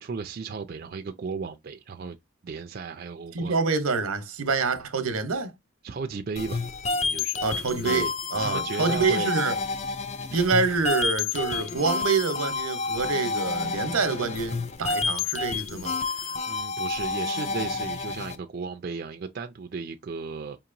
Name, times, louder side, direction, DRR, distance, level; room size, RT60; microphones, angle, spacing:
voice 1, 0.0-2.2 2.4-3.6 5.8-6.6 6.9-7.4 7.8-8.1 8.4-9.3 16.0-20.6, right 4 dB, 45° right, 0.3 m, -35 dB
voice 2, 3.3-5.5 7.4-9.6 10.3-15.9, right 4 dB, 90° right, 0.8 m, -26 dB
sound 1, 6.4-18.4, left 4 dB, 30° left, 0.3 m, -29 dB
5.1 x 2.9 x 2.5 m
head